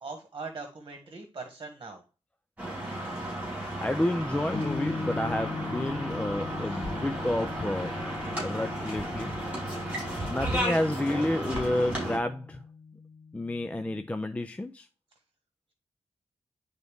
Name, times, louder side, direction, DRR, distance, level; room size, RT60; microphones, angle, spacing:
voice 1, 0.0-2.0 6.7-6.8, right 4 dB, 40° right, 1.5 m, -41 dB
sound 1, 2.6-12.2, right 1 dB, 10° right, 4.8 m, -34 dB
voice 2, 3.8-7.9 8.4-9.3 10.3-12.6 13.3-14.9, left 1 dB, 10° left, 0.4 m, -30 dB
sound 2, 4.5-14.2, left 4 dB, 55° left, 0.8 m, -40 dB
10.5 x 4.0 x 3.5 m
wide cardioid pair, 175°, 11 cm